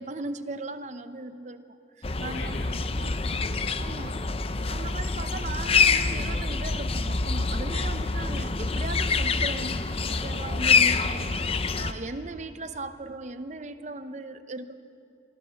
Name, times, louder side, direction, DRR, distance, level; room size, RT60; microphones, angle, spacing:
voice 1, 0.0-2.5 3.0-3.1 3.8-4.3 4.7-9.8 10.2-14.7, right 2 dB, 40° right, 10 dB, 0.8 m, -38 dB
sound 1, 2.0-11.9, left 4 dB, 30° left, 0.6 m, -26 dB
voice 2, 2.2-3.0 3.3-3.8 4.7-5.0 12.0-12.1, left 1 dB, 80° left, 2 dB, 2.8 m, -42 dB
24.0 x 17.0 x 7.1 m, 2.5 s
head